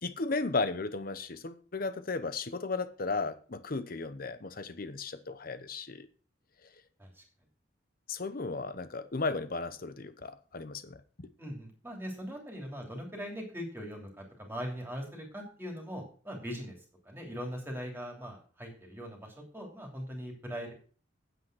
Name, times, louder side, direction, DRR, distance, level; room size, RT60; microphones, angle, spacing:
voice 1, 0.0-6.1 8.1-11.3, left 3 dB, 50° left, 0.9 m, -35 dB
voice 2, 11.4-16.7 17.1-20.7, equal, 10° right, 2.9 m, -40 dB
9.3 x 7.9 x 6.1 m
head